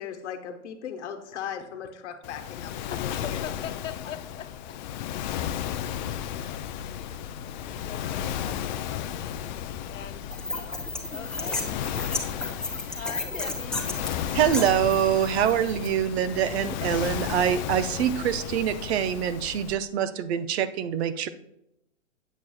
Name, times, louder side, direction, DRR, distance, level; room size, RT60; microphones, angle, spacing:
voice 1, 0.0-3.4, left 8 dB, 65° left, 5 dB, 1.1 m, -38 dB
voice 2, 1.3-1.9 3.1-4.8 6.3-6.7 7.6-11.7 12.5-14.0, left 8 dB, 90° left, 9 dB, 0.7 m, -43 dB
Waves surf, 2.2-19.7, left 10 dB, 40° left, 0.4 m, -34 dB
sound 1, 6.2-19.7, left 3 dB, 25° right, 1.0 m, -45 dB
sound 2, 10.3-15.9, left 2 dB, ahead, 0.7 m, -34 dB
voice 3, 14.3-21.3, right 10 dB, 55° right, 12 dB, 0.6 m, -25 dB
8.1 x 7.1 x 2.3 m, 0.82 s
hypercardioid pair, 115°, 38 cm